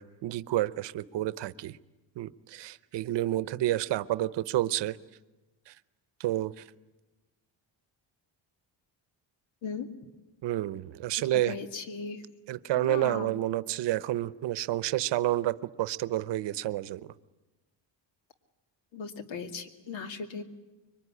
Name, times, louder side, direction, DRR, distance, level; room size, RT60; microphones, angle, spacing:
voice 1, 0.0-1.8 2.2-5.0 5.7-5.8 6.2-6.6 10.4-11.6 12.5-17.1, right 14 dB, 65° right, 16 dB, 0.9 m, -30 dB
voice 2, 11.5-12.2 12.7-13.3 18.9-20.4, left 5 dB, 75° left, 7 dB, 2.5 m, -37 dB
25.5 x 23.0 x 9.8 m, 1.2 s
cardioid pair, 155°, 46 cm